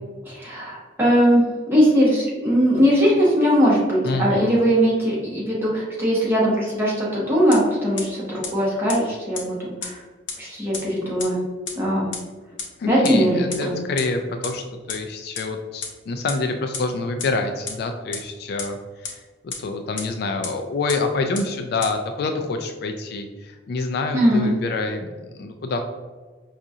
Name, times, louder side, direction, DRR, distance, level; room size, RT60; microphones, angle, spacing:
voice 1, 0.3-10.0 10.4-11.4 11.8-12.1 12.8-13.7 24.1-24.5, equal, 10° right, -7 dB, 1.1 m, -20 dB
voice 2, 4.0-4.4 12.8-18.8 19.0-25.8, left 3 dB, 55° left, 5 dB, 0.3 m, -27 dB
sound 1, 7.5-7.6 8.0-8.1 8.4-8.5 8.9-9.0 9.3-9.4 9.8-9.9 10.3-10.4 10.7-10.8 11.2-11.3 11.7-11.8 12.1-12.2 12.6-12.7 13.0-13.1 13.5-13.6 14.0-14.1 14.4-14.5 14.9-15.0 15.3-15.4 15.8-15.9 16.3-16.4 16.7-16.8 17.2-17.3 17.7-17.8 18.1-18.2 18.6-18.7 19.0-19.1 19.5-19.6 20.0-20.1 20.4-20.5 20.9-21.0 21.3-21.4 21.8-21.9, left 5 dB, 90° left, 0.8 m, -29 dB
4.9 x 2.4 x 2.7 m, 1.4 s
head